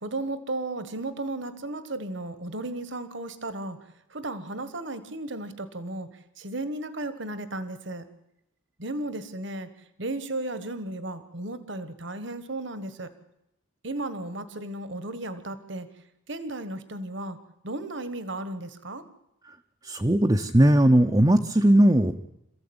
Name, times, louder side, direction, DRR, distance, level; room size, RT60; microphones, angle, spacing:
voice 1, 0.0-3.8 4.1-6.1 6.4-8.0 8.8-9.7 10.0-13.1 13.8-15.9 16.3-17.4 17.6-19.0, right 2 dB, 60° right, 12 dB, 1.6 m, -34 dB
voice 2, 19.8-22.1, right 1 dB, 20° right, 4 dB, 0.8 m, -19 dB
27.0 x 15.0 x 8.9 m, 0.86 s
head